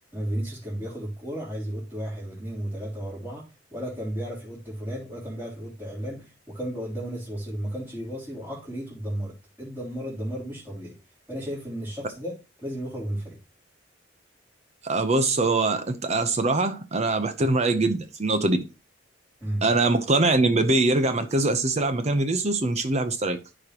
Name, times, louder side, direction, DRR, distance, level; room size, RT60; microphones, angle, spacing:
voice 1, 0.1-11.0 11.3-13.4 19.4-19.7, equal, 10° right, 3.5 m, -34 dB
voice 2, 14.8-18.6 19.6-23.4, right 2 dB, 35° right, 0.8 m, -23 dB
13.5 x 5.0 x 2.9 m
head